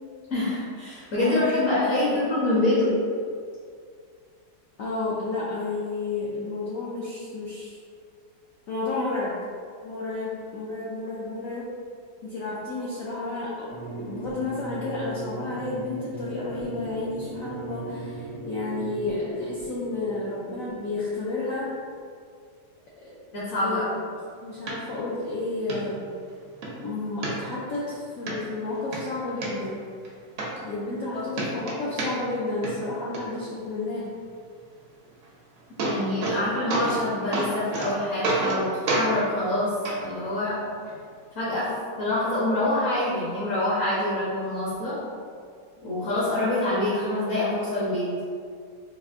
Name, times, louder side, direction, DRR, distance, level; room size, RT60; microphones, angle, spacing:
voice 1, 0.3-2.9 23.3-23.9 31.1-31.2 35.8-39.7 40.0-40.5 41.3-41.7 42.0-44.9 45.8-48.1, left 1 dB, 55° left, -8 dB, 1.1 m, -25 dB
voice 2, 1.2-2.2 4.8-7.8 8.7-9.4 9.8-11.7 12.2-13.7 14.0-21.7 23.0-23.1 23.6-23.8 24.4-26.1 26.7-29.8 30.6-34.1, left 2 dB, 75° left, -7 dB, 0.7 m, -31 dB
sound 1, 13.7-21.9, right 2 dB, 50° right, 0.3 m, -38 dB
sound 2, 24.7-24.8 25.2-25.3 25.7-25.8 26.3-26.7 27.2-27.8 28.3-28.4 28.7-29.5 30.0-30.1 30.4-31.1 31.3-32.4 32.6-33.2 35.2-35.3 35.6-36.4 36.7-37.0 37.3-37.9 38.2-38.6 38.9-39.1 39.8-40.0 40.9-41.0, right 2 dB, 70° right, 0.7 m, -28 dB
4.2 x 2.5 x 2.5 m, 2.2 s
omnidirectional pair, 2.0 m